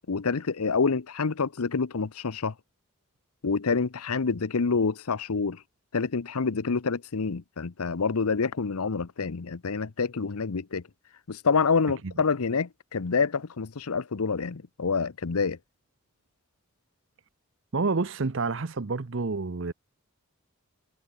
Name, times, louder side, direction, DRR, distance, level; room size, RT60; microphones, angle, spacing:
voice 1, 0.1-2.5 3.4-5.6 5.9-10.8 11.3-15.6, left 5 dB, 85° left, 0.8 m, -27 dB
voice 2, 17.7-19.7, right 4 dB, 60° right, 0.7 m, -28 dB
head